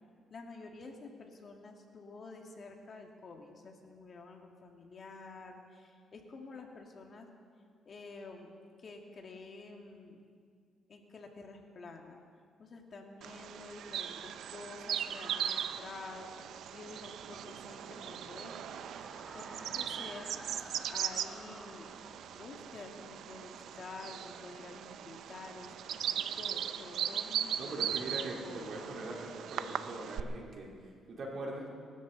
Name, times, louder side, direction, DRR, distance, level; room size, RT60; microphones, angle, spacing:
voice 1, 0.3-7.3 7.9-8.5 8.8-10.2 10.9-12.2 12.6-18.8 19.3-20.3 20.9-21.9 22.3-27.9 28.2-28.8, left 3 dB, 45° left, 2 dB, 2.1 m, -49 dB
Bird vocalization bird call bird song, 13.2-30.2, right 9 dB, 75° right, 0.6 m, -39 dB
sound 1, 16.1-24.4, right 1 dB, 5° right, 1.3 m, -54 dB
voice 2, 27.6-31.7, right 2 dB, 55° right, -3 dB, 4.0 m, -42 dB
25.5 x 13.0 x 4.1 m, 2.2 s
cardioid pair, 90°, 0 cm